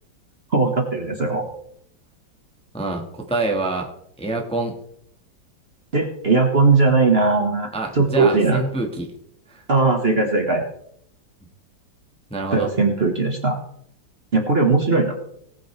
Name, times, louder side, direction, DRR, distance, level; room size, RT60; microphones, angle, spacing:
voice 1, 0.5-1.4 5.9-8.6 9.7-10.6 12.5-13.6 14.3-15.2, right 3 dB, 35° right, 2 dB, 1.5 m, -19 dB
voice 2, 2.7-3.9 4.2-4.7 7.7-9.1 9.5-9.6 12.3-12.7, right 2 dB, 5° left, 1 dB, 1.3 m, -26 dB
19.0 x 8.9 x 3.3 m, 0.71 s
omnidirectional pair, 2.1 m